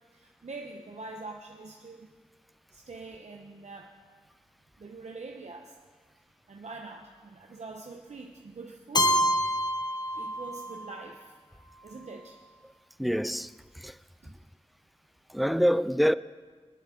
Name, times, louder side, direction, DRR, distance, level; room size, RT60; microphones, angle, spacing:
voice 1, 0.1-2.1 2.7-3.9 4.8-5.8 6.5-9.3 10.1-11.3 11.8-12.4 14.2-14.3, right 3 dB, 75° right, 0.9 m, -44 dB
Keyboard (musical), 8.9-10.9, equal, 35° left, 0.9 m, -27 dB
voice 2, 13.0-14.0 15.3-16.1, equal, ahead, 0.4 m, -26 dB
19.5 x 11.0 x 3.8 m
cardioid pair, 40°, 12 cm